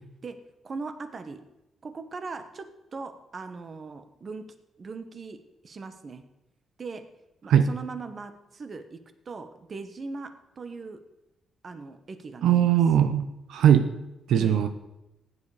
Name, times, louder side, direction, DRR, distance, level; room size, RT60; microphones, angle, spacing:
voice 1, 0.6-1.4 1.8-4.4 4.8-6.2 6.8-7.0 7.4-9.0 9.2-10.3 10.6-11.0 11.6-12.8 14.3-14.6, right 4 dB, 40° right, 9 dB, 1.3 m, -39 dB
voice 2, 12.4-13.9 14.3-14.7, right 9 dB, 90° right, 8 dB, 0.9 m, -20 dB
16.0 x 10.0 x 5.0 m, 0.96 s
cardioid pair, 120°, 0 cm